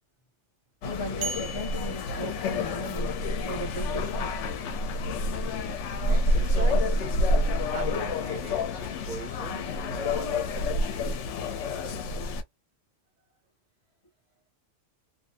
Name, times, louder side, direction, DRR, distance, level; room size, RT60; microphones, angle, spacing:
sound 1, 0.8-12.4, left 1 dB, 75° left, 0.9 m, -28 dB
voice 1, 0.8-3.2 3.4-4.7, equal, 35° left, 0.5 m, -37 dB
sound 2, 1.2-3.1, right 4 dB, 75° right, 1.0 m, -39 dB
voice 2, 6.0-7.1 7.7-10.5, right 4 dB, 50° right, 0.7 m, -40 dB
2.6 x 2.0 x 2.5 m
omnidirectional pair, 1.3 m